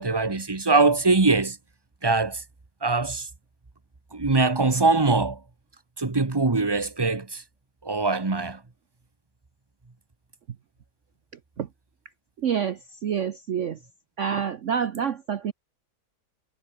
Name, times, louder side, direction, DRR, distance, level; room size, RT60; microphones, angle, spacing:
voice 1, 0.0-1.6 2.0-2.4 2.8-3.3 4.1-5.4 6.0-7.4 7.8-8.6, right 3 dB, 15° right, 1.0 m, -22 dB
voice 2, 12.4-13.8 14.2-15.5, right 8 dB, 55° right, 1.1 m, -27 dB
omnidirectional pair, 1.8 m